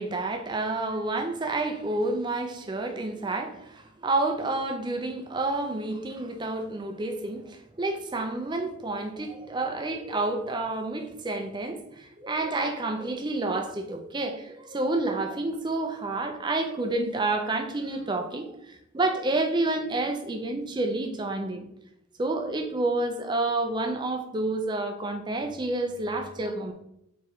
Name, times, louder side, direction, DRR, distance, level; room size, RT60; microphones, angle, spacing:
voice 1, 0.0-21.6 22.2-26.7, right 2 dB, 20° right, 5 dB, 0.5 m, -29 dB
4.5 x 3.5 x 3.1 m, 0.78 s
head